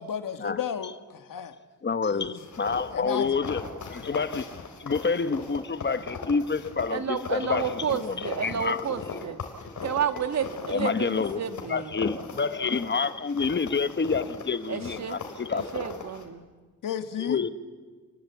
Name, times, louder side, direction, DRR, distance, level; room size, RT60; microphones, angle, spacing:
voice 1, 0.0-1.5 2.1-2.5 2.9-3.4 16.8-17.4, left 8 dB, 90° left, 1.7 m, -33 dB
voice 2, 1.8-4.5 4.8-8.8 10.7-11.4 11.7-15.8 17.2-17.5, left 5 dB, 35° left, 1.1 m, -28 dB
Snow walking sound, 2.4-16.3, left 4 dB, 65° left, 3.8 m, -39 dB
voice 3, 6.9-9.4 9.8-11.9 14.7-15.2 15.5-16.4, right 7 dB, 55° right, 1.8 m, -31 dB
29.5 x 21.0 x 8.3 m
wide cardioid pair, 145°, 32 cm